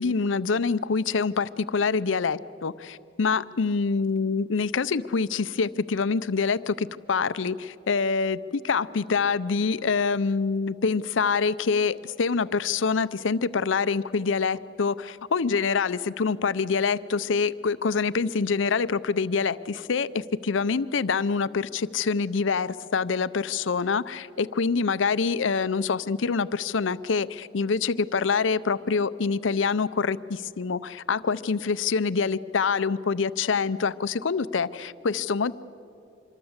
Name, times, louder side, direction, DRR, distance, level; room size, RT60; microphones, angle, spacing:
voice 1, 0.0-35.5, left 5 dB, 75° left, 16 dB, 0.6 m, -26 dB
26.0 x 22.5 x 8.0 m, 2.7 s
head